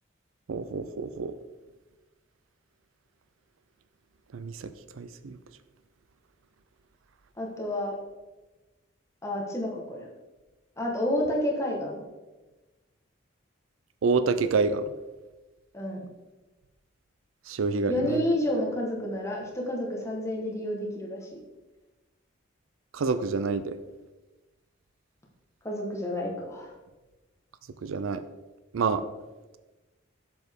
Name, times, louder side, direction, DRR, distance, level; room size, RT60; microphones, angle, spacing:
voice 1, 0.5-1.3 4.3-4.7 5.0-5.4 14.0-14.8 17.5-18.2 22.9-23.8 27.8-28.2 28.7-29.0, right 4 dB, 85° right, 12 dB, 0.4 m, -27 dB
voice 2, 7.4-8.0 9.2-10.1 10.8-12.0 15.7-16.0 17.9-21.2 25.6-26.7, left 1 dB, 15° left, -2 dB, 1.3 m, -30 dB
7.9 x 6.9 x 3.6 m, 1.1 s
head